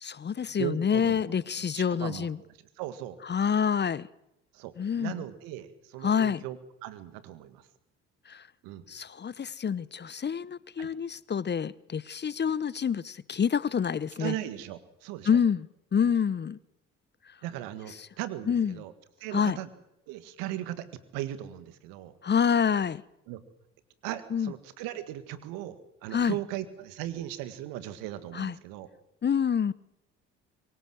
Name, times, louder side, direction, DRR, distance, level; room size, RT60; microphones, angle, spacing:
voice 1, 0.0-2.4 3.3-4.1 4.8-5.1 6.0-6.4 8.3-8.4 8.9-14.3 15.3-15.7 15.9-16.6 18.5-18.8 19.3-19.6 22.2-23.0 24.3-24.5 26.1-26.4 28.3-28.5 29.2-29.7, left 7 dB, 30° left, 0.9 m, -27 dB
voice 2, 0.6-2.5 2.8-3.2 4.5-7.7 8.6-8.8 10.8-10.9 14.2-15.4 17.4-18.9 19.2-19.7 20.1-20.9 21.1-22.1 23.3-23.4 24.0-28.9, right 13 dB, 75° right, 1.9 m, -38 dB
23.5 x 20.0 x 7.8 m
hypercardioid pair, 60°, 34 cm